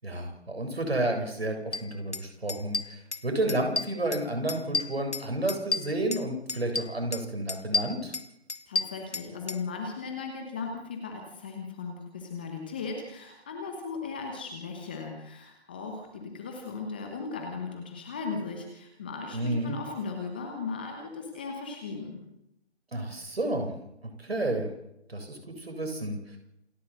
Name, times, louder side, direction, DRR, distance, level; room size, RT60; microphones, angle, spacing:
voice 1, 0.0-8.1 19.3-19.8 22.9-23.7 24.0-24.7 25.1-26.2, right 1 dB, 60° right, 4 dB, 7.4 m, -31 dB
sound 1, 1.7-1.8 2.1-2.2 2.5-3.2 3.5-4.2 4.5-6.2 6.5-7.2 7.5-9.6, left 3 dB, 80° left, 1.9 m, -31 dB
voice 2, 8.7-22.2, left 4 dB, 10° left, 2 dB, 1.1 m, -37 dB
28.0 x 12.0 x 7.8 m, 0.82 s
figure-of-eight pair, 160°, 34 cm